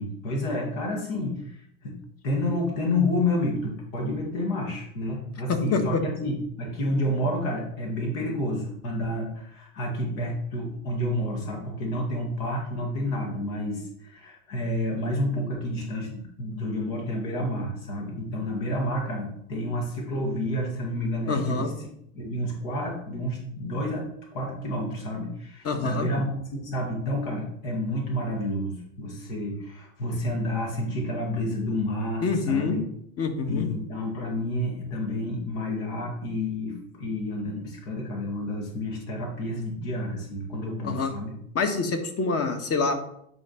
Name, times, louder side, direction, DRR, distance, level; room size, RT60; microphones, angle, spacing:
voice 1, 0.0-2.0 2.2-21.7 22.1-32.8 33.5-41.3, left 1 dB, 70° left, -1 dB, 2.3 m, -30 dB
voice 2, 5.5-6.0 21.3-21.7 25.6-26.1 32.2-32.8 33.2-33.7 40.8-41.1 41.5-42.9, left 4 dB, 35° left, 6 dB, 1.4 m, -26 dB
9.5 x 3.7 x 4.3 m, 0.71 s
supercardioid pair, 100°, 42 cm